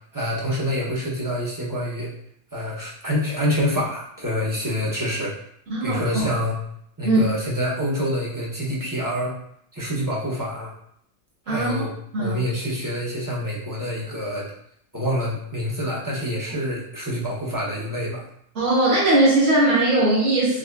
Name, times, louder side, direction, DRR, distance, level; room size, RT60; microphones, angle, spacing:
voice 1, 0.1-2.1 2.5-5.4 5.8-6.6 7.0-9.3 9.7-10.7 11.5-11.9 12.2-14.5 14.9-18.2, equal, 20° right, -5 dB, 0.6 m, -26 dB
voice 2, 5.7-6.2 7.0-7.2 11.5-11.8 12.1-12.4 18.5-20.6, right 2 dB, 90° right, -9 dB, 1.4 m, -19 dB
6.1 x 2.0 x 2.2 m, 0.69 s
omnidirectional pair, 1.2 m